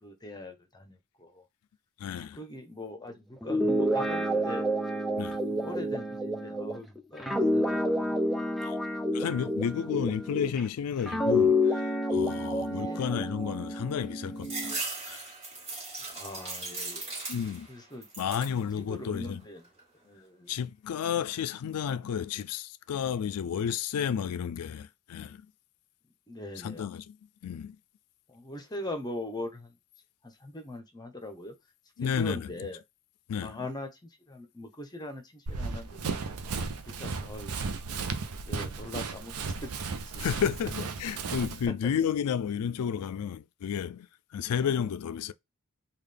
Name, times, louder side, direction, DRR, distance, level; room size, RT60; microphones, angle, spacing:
voice 1, 0.0-1.4 2.4-4.7 5.5-8.2 12.7-13.0 16.2-17.1 17.7-18.1 18.8-19.6 20.0-20.5 26.3-26.9 28.3-29.8 30.2-31.5 32.0-32.8 33.4-36.0 36.9-37.6 38.5-39.7 40.1-40.5, left 1 dB, 20° left, 0.8 m, -41 dB
voice 2, 2.0-2.4 5.2-5.4 8.6-8.8 9.1-14.8 15.1-15.3 17.3-17.7 18.2-19.4 20.5-25.5 26.6-27.2 27.4-27.8 32.0-32.5 33.3-33.7 40.2-44.1 44.3-45.3, left 8 dB, 85° left, 0.4 m, -32 dB
Guitar, 3.4-10.6 11.1-14.8, left 1 dB, ahead, 0.5 m, -29 dB
sound 1, 14.4-17.7 18.0-18.6 19.1-19.8, right 3 dB, 25° right, 1.7 m, -38 dB
Run, 35.5-41.7, right 4 dB, 80° right, 0.6 m, -35 dB
3.8 x 2.4 x 3.3 m
head